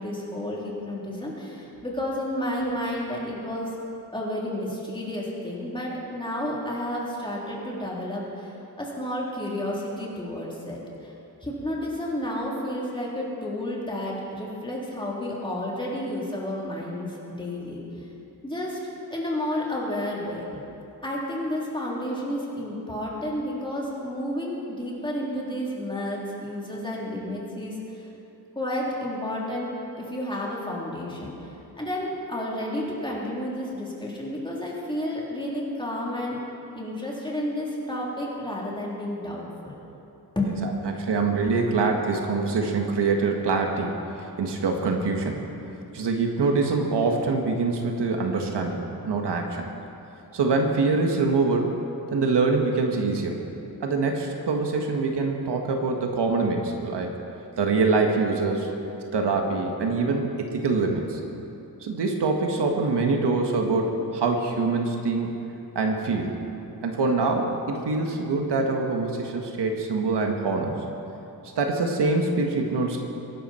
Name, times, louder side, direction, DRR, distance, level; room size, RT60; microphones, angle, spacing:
voice 1, 0.0-3.7 4.1-11.1 11.4-18.0 18.4-18.8 19.1-20.6 21.0-28.1 28.5-31.3 31.8-36.4 36.7-39.8 40.3-40.5, left 1 dB, 10° left, -5 dB, 3.4 m, -31 dB
voice 2, 40.6-45.4 45.9-49.7 50.3-51.7 52.1-53.4 53.8-57.1 57.6-58.7 59.1-61.2 61.8-65.3 65.8-66.3 66.8-70.8 71.6-73.0, right 3 dB, 85° right, 2 dB, 1.7 m, -24 dB
22.5 x 12.0 x 4.5 m, 2.9 s
wide cardioid pair, 125°, 40 cm